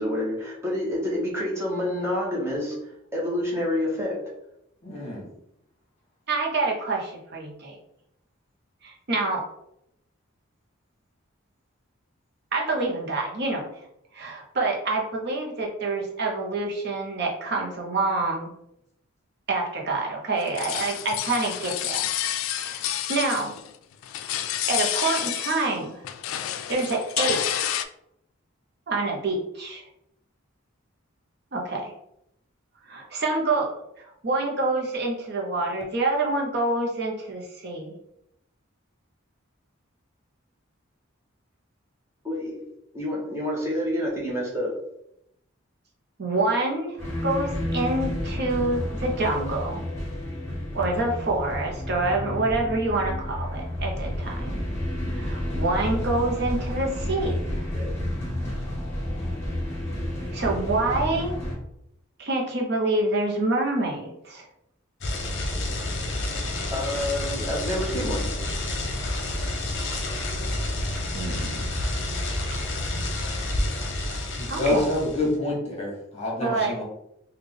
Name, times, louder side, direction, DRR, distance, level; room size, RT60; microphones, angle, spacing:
voice 1, 0.0-2.8 3.1-4.3 42.2-42.7 42.9-44.9 57.7-58.0 66.7-68.3, left 1 dB, 15° right, -4 dB, 1.0 m, -28 dB
voice 2, 4.8-5.2 74.3-76.8, left 1 dB, 30° left, -3 dB, 1.2 m, -27 dB
voice 3, 6.3-7.8 8.8-9.4 12.5-13.8 14.1-18.5 19.5-22.1 22.5-23.5 24.7-26.0 26.7-27.7 28.9-29.8 31.5-31.9 32.8-37.9 46.2-47.0 47.2-49.8 50.7-54.6 55.1-57.4 60.3-61.3 62.2-64.5 71.1-71.7 74.5-74.9 76.4-76.7, right 2 dB, 55° right, -1 dB, 0.7 m, -27 dB
sound 1, 20.4-23.8 24.0-25.8 26.0-27.8, left 11 dB, 80° left, 0.3 m, -29 dB
sound 2, 47.0-61.5, left 1 dB, 15° left, 1.5 m, -30 dB
sound 3, 65.0-75.3, left 1 dB, 60° left, 0.7 m, -29 dB
3.4 x 2.3 x 3.5 m, 0.78 s
head